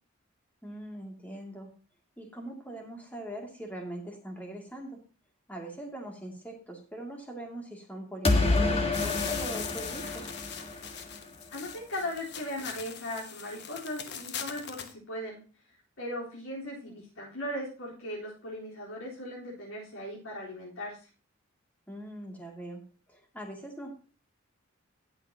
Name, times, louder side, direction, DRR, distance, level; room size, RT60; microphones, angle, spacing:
voice 1, 0.6-1.7 2.2-5.0 5.5-10.3 21.9-22.8 23.1-23.9, right 1 dB, 10° left, 0 dB, 2.6 m, -41 dB
sound 1, 8.3-11.2, left 2 dB, 30° left, 1.6 m, -28 dB
sound 2, 8.9-14.9, left 7 dB, 55° left, 1.2 m, -41 dB
voice 2, 11.5-15.4 16.0-21.0, left 1 dB, 85° left, -5 dB, 4.0 m, -38 dB
18.0 x 6.5 x 2.9 m, 0.36 s
head